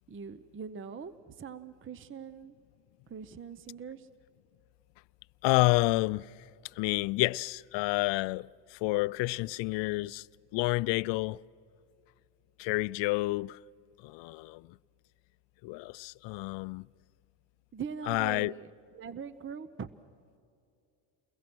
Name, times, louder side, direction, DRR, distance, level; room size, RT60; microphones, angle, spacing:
voice 1, 0.1-2.6 3.1-4.1 17.7-19.9, right 6 dB, 25° right, 0.8 m, -42 dB
voice 2, 5.4-6.3 6.7-10.3 10.5-11.4 12.6-13.6 14.0-14.8 15.6-16.9 18.1-18.5, left 21 dB, 65° left, 0.5 m, -29 dB
29.5 x 22.0 x 6.2 m
supercardioid pair, 85°, 49 cm